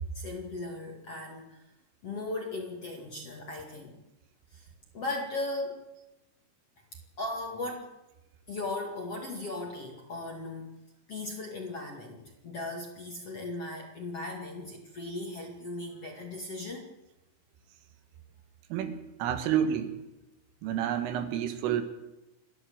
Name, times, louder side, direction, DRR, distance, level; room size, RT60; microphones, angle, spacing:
voice 1, 0.1-1.6 2.0-4.0 4.5-4.7 4.9-5.8 7.2-7.9 8.5-10.7 11.1-16.9, left 2 dB, 45° left, 1 dB, 2.2 m, -37 dB
voice 2, 18.7-19.9 20.6-21.8, right 9 dB, 80° right, 8 dB, 4.1 m, -29 dB
28.5 x 12.0 x 7.8 m, 0.97 s
omnidirectional pair, 5.7 m